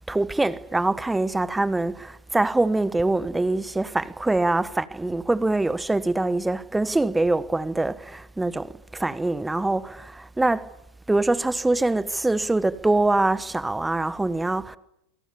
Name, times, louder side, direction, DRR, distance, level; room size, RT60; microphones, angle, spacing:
voice 1, 0.1-10.7 11.1-14.8, right 2 dB, 5° right, 1.2 m, -24 dB
28.5 x 26.0 x 7.0 m
figure-of-eight pair, 90°, 0 cm